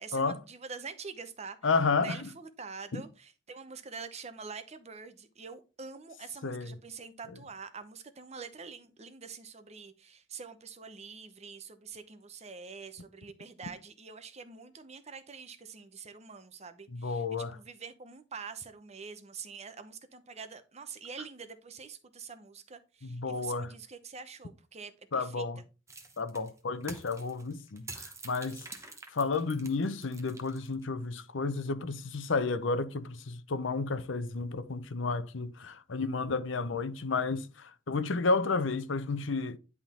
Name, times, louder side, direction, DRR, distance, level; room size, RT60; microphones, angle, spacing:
voice 1, 0.0-1.6 2.0-25.5, right 5 dB, 35° right, 0.8 m, -45 dB
voice 2, 1.6-2.3 2.9-3.0 6.4-6.7 16.9-17.5 23.0-23.7 25.1-25.6 26.2-28.6 29.1-39.6, left 4 dB, 70° left, 0.7 m, -31 dB
sound 1, 25.9-30.8, right 3 dB, 15° right, 1.1 m, -47 dB
10.5 x 3.7 x 4.3 m
head